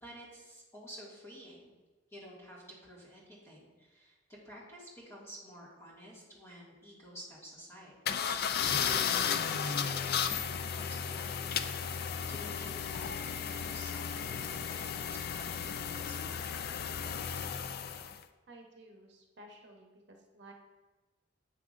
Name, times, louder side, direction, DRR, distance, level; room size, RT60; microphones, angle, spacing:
voice 1, 0.0-1.7 2.1-4.2 4.4-7.9 8.9-17.2, equal, 15° left, -6 dB, 1.9 m, -51 dB
sound 1, 8.1-18.2, left 7 dB, 55° left, 0.3 m, -34 dB
voice 2, 18.5-20.5, right 1 dB, 65° right, 1 dB, 0.9 m, -54 dB
7.9 x 6.0 x 2.5 m, 1.2 s
head